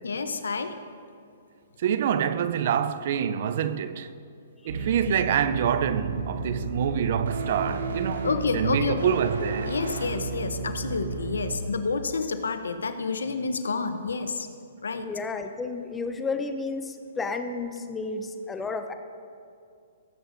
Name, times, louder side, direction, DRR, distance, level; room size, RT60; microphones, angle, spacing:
voice 1, 0.0-0.8 5.1-5.2 8.2-9.1 9.7-14.5 14.8-15.1, left 4 dB, 90° left, 0.8 m, -29 dB
voice 2, 1.8-4.1 4.7-9.7, right 8 dB, 55° right, 0.5 m, -26 dB
sound 1, 4.7-11.5, right 3 dB, 80° right, 1.3 m, -32 dB
voice 3, 15.0-18.9, left 4 dB, 10° left, 0.7 m, -32 dB
19.0 x 7.9 x 2.6 m
hypercardioid pair, 145°, 0 cm